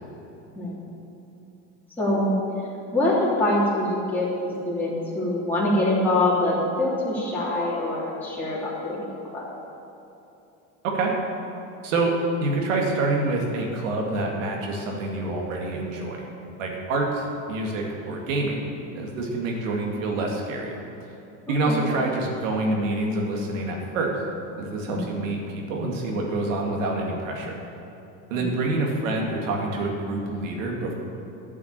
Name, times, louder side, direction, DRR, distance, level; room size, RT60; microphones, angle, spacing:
voice 1, 0.5-0.9 2.0-2.4 2.9-4.3 4.6-9.5 21.7-21.8 24.9-25.2 28.3-28.6, left 1 dB, 5° left, -8 dB, 2.9 m, -24 dB
voice 2, 11.8-12.1 12.4-16.3 16.6-18.6 18.9-21.1 21.5-24.2 24.6-27.6 28.3-30.9, right 2 dB, 90° right, 0 dB, 2.3 m, -27 dB
11.0 x 6.1 x 8.9 m, 3.0 s
supercardioid pair, 115°, 38 cm